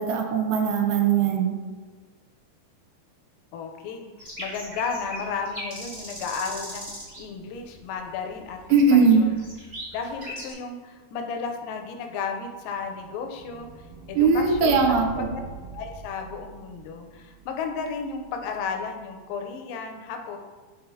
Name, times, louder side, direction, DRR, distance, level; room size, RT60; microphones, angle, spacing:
voice 1, 0.0-1.6 8.7-9.3 14.2-15.3, right 5 dB, 85° right, 2 dB, 2.5 m, -20 dB
voice 2, 3.5-6.9 7.2-8.6 8.9-9.3 9.9-15.0 15.3-15.4 15.7-20.4, left 5 dB, 80° left, 4 dB, 2.2 m, -33 dB
sound 1, 4.2-7.2 7.5-8.0 8.4-10.5, equal, 30° right, 0.8 m, -38 dB
sound 2, 12.0-18.9, right 4 dB, 60° right, 2.0 m, -43 dB
9.9 x 4.0 x 2.7 m, 1.4 s
omnidirectional pair, 4.3 m